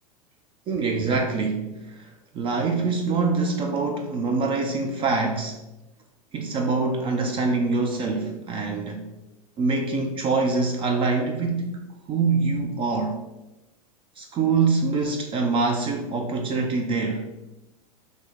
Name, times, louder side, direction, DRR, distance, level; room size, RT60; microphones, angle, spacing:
voice 1, 0.7-5.6 6.3-9.1 9.6-11.8 12.1-13.2 14.2-17.3, right 4 dB, 25° right, 4 dB, 0.4 m, -25 dB
3.3 x 2.6 x 3.5 m, 0.98 s
hypercardioid pair, 95°, 20 cm